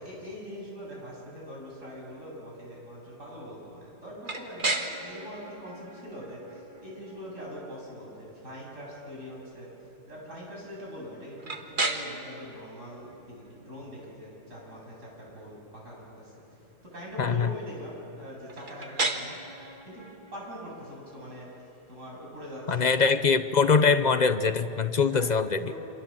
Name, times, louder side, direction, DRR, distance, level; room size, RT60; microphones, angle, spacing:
voice 1, 0.0-9.7 10.1-16.3 16.8-19.4 19.9-20.1 20.3-21.5 21.9-23.0 24.9-25.3 25.6-25.8, equal, 45° right, -3 dB, 8.4 m, -43 dB
sound 1, 4.2-24.0, right 2 dB, 30° right, 1.7 m, -38 dB
voice 2, 17.2-17.5 22.7-25.7, left 5 dB, 40° left, 10 dB, 0.6 m, -23 dB
28.5 x 26.5 x 7.5 m, 2.8 s
omnidirectional pair, 1.8 m